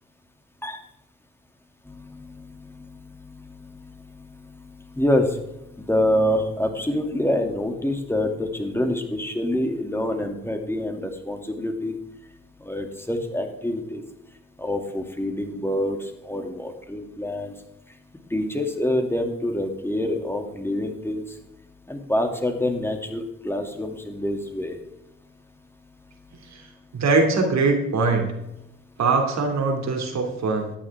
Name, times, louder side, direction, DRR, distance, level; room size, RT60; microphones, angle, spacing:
voice 1, 1.9-4.6 4.9-5.4 5.8-12.0 12.6-14.0 14.6-17.5 18.3-21.2 21.9-24.8, left 1 dB, 10° left, 4 dB, 2.5 m, -26 dB
voice 2, 26.9-28.3 29.0-30.7, right 3 dB, 65° right, 3 dB, 2.7 m, -22 dB
13.5 x 8.9 x 3.6 m, 0.88 s
supercardioid pair, 50°, 30 cm